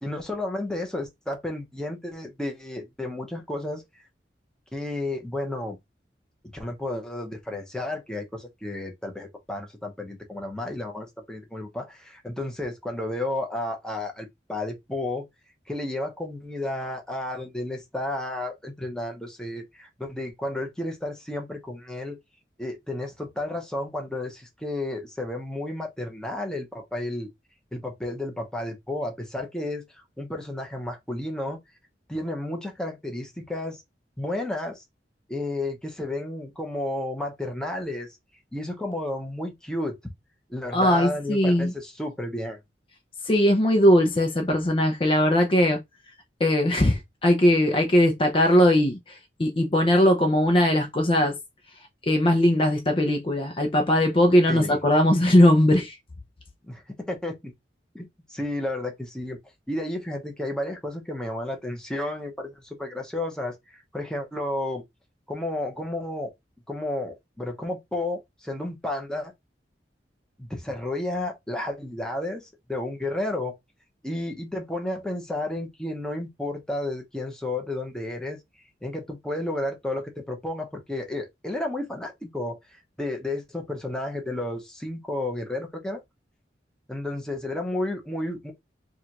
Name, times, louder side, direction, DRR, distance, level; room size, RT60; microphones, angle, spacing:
voice 1, 0.0-3.8 4.7-5.8 6.5-15.2 15.7-22.2 22.6-27.3 27.7-29.8 30.2-31.6 32.1-33.8 34.2-34.8 35.3-38.1 38.5-40.0 40.5-42.6 54.5-54.8 56.6-57.5 57.9-59.4 59.7-63.5 63.9-64.8 65.3-66.3 66.7-69.3 70.4-73.6 74.0-78.4 78.8-82.6 83.0-86.0 86.9-88.5, left 1 dB, 5° left, 0.9 m, -32 dB
voice 2, 40.7-41.7 43.3-45.8 46.4-51.4 52.1-56.0, left 1 dB, 30° left, 0.7 m, -20 dB
4.9 x 2.4 x 2.9 m
head